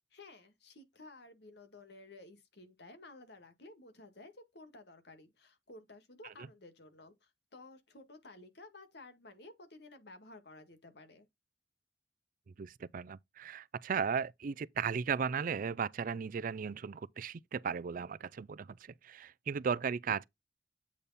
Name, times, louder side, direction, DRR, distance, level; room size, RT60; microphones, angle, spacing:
voice 1, 0.1-11.3, left 2 dB, 70° left, 1.9 m, -54 dB
voice 2, 12.6-20.2, right 6 dB, 50° right, 0.4 m, -36 dB
8.3 x 3.5 x 4.1 m
head